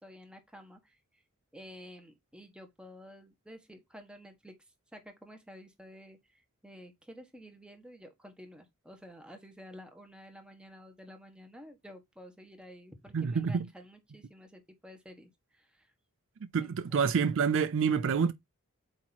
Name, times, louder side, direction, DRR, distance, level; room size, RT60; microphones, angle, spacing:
voice 1, 0.0-1.0 1.5-4.5 4.9-15.9 16.6-17.0, equal, 5° right, 1.3 m, -51 dB
voice 2, 13.1-13.7 16.5-18.3, right 6 dB, 60° right, 0.4 m, -27 dB
8.4 x 2.9 x 4.2 m
head